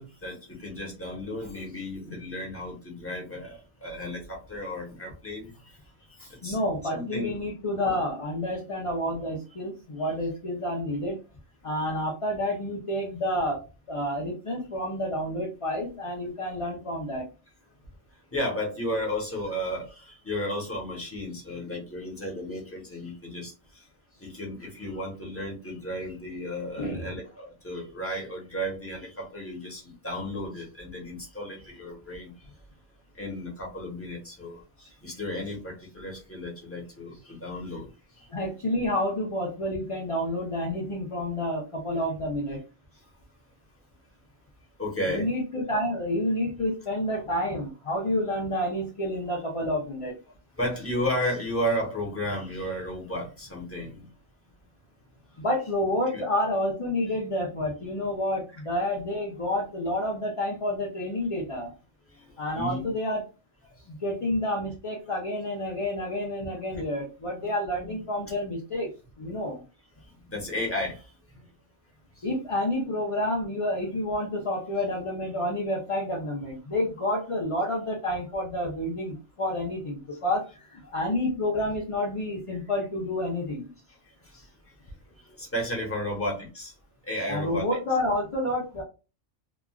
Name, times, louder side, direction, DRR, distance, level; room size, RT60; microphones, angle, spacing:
voice 1, 0.0-5.5 6.2-6.6 6.9-7.4 18.3-23.5 24.2-32.3 33.2-37.9 44.8-45.3 50.6-54.1 56.1-56.2 62.2-62.3 62.5-62.9 67.4-67.5 67.8-67.9 70.3-71.0 84.3-84.4 85.4-86.7 87.1-87.7, equal, 10° left, -2 dB, 0.9 m, -33 dB
voice 2, 6.4-11.2 11.6-13.6 13.9-17.3 26.8-27.2 38.3-42.6 45.1-50.2 55.4-61.7 62.4-63.2 63.9-68.9 69.2-69.6 72.2-83.7 87.3-88.8, left 1 dB, 40° left, -3 dB, 0.5 m, -29 dB
3.0 x 2.4 x 2.3 m, 0.31 s
omnidirectional pair, 1.3 m